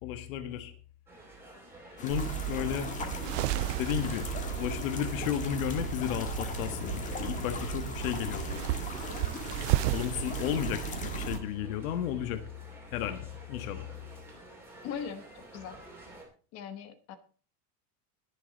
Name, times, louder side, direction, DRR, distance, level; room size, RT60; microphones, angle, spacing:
voice 1, 0.0-0.7 2.0-2.9 3.8-4.2 4.6-8.6 9.9-12.4 12.9-13.8, left 10 dB, 65° left, 8 dB, 1.5 m, -33 dB
sound 1, 1.1-16.3, right 1 dB, 5° right, 2.8 m, -51 dB
sound 2, 2.0-11.4, left 4 dB, 15° left, 1.6 m, -40 dB
sound 3, 2.1-11.4, right 16 dB, 55° right, 0.5 m, -34 dB
voice 2, 14.8-15.8 16.5-17.2, left 7 dB, 35° left, 10 dB, 1.1 m, -40 dB
21.0 x 7.1 x 4.0 m, 0.39 s
cardioid pair, 180°, 43 cm